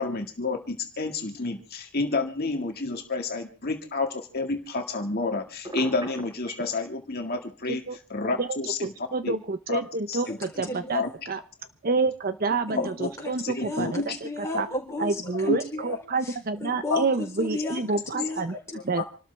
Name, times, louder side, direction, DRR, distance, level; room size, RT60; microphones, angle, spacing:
voice 1, 0.0-9.4 9.7-9.8 10.1-10.4 10.9-11.1 13.0-13.1 13.4-14.1 14.5-14.6 15.5-15.6 16.9-17.0 19.0-19.1, left 3 dB, 45° left, 3 dB, 1.9 m, -29 dB
Telephone, 5.6-6.8, right 1 dB, 20° right, 4.9 m, -37 dB
voice 2, 9.1-11.4 11.8-14.0 14.5-14.7 15.0-18.5 18.8-19.0, right 3 dB, 40° right, 11 dB, 0.7 m, -28 dB
voice 3, 10.6-11.0 12.7-12.9 13.2-19.1, left 2 dB, 15° left, -1 dB, 4.2 m, -35 dB
27.5 x 13.0 x 3.4 m, 0.36 s
head